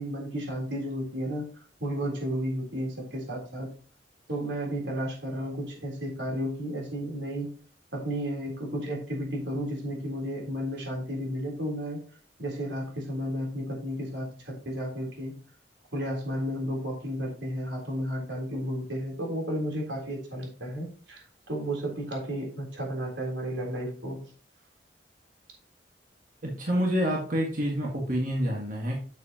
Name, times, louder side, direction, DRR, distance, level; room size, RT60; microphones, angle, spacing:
voice 1, 0.0-1.5 1.8-3.7 4.3-7.5 7.9-12.0 12.4-15.4 15.9-24.2, equal, 85° right, -1 dB, 3.5 m, -33 dB
voice 2, 26.4-29.0, equal, 50° right, -2 dB, 1.6 m, -28 dB
8.2 x 6.8 x 2.9 m, 0.42 s
head